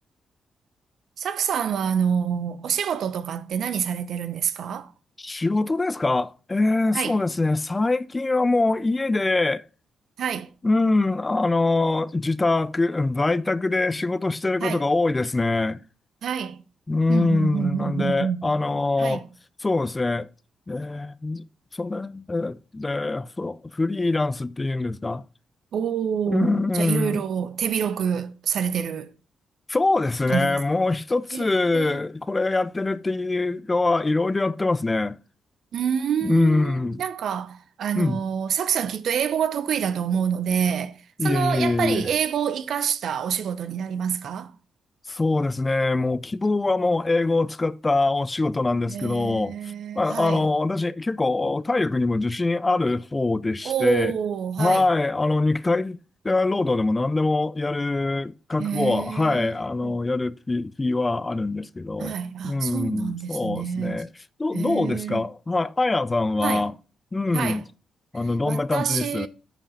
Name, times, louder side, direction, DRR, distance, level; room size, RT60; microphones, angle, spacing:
voice 1, 1.2-4.9 6.9-7.2 10.2-10.5 14.6-14.8 16.2-16.6 17.1-18.4 19.0-19.2 25.7-29.1 30.3-30.6 31.3-31.4 31.7-32.0 35.7-44.5 48.9-50.5 53.6-54.9 58.6-59.5 59.8-59.9 62.0-64.0 64.5-65.2 66.4-66.7 67.3-67.6 68.4-69.3, right 8 dB, 65° right, 0.8 m, -27 dB
voice 2, 5.2-9.6 10.6-15.8 16.9-19.2 19.6-20.3 20.7-21.4 21.7-25.2 26.3-27.2 29.7-35.2 36.2-37.0 38.0-38.2 41.2-42.1 45.1-49.5 50.0-54.1 54.6-62.1 62.4-64.1 64.4-66.7 67.1-67.6 68.1-69.3, left 2 dB, 30° left, 0.5 m, -24 dB
8.8 x 5.0 x 5.1 m
hypercardioid pair, 40°, 0 cm